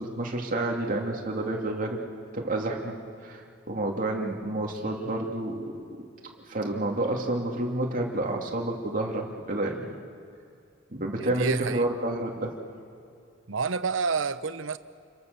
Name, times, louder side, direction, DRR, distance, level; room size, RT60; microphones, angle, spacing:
voice 1, 0.0-2.0 2.3-3.0 3.2-6.1 6.5-10.0 10.9-12.6, right 2 dB, 45° right, 1 dB, 2.6 m, -29 dB
voice 2, 11.2-11.8 13.5-14.8, right 5 dB, 80° right, 14 dB, 0.8 m, -29 dB
29.0 x 23.0 x 6.9 m, 2.5 s
head